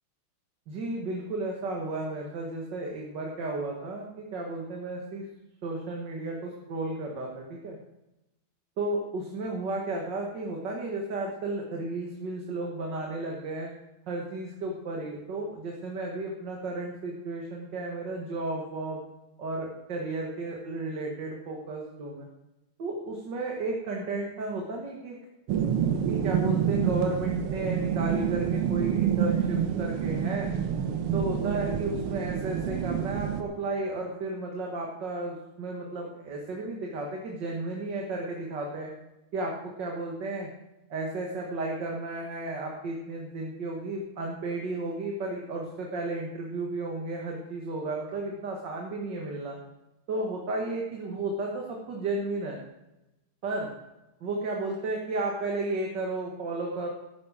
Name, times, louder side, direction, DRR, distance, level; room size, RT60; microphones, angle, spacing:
voice 1, 0.7-5.3 5.6-7.8 8.8-13.7 14.1-19.0 19.4-22.3 22.8-25.2 26.1-30.5 31.1-38.9 39.3-40.5 40.9-49.6 50.1-52.6 53.4-53.7 54.2-56.9, right 2 dB, 55° right, -1 dB, 2.3 m, -33 dB
sound 1, 25.5-33.4, right 8 dB, 90° right, 1.9 m, -27 dB
14.0 x 9.8 x 5.1 m, 0.96 s
omnidirectional pair, 2.4 m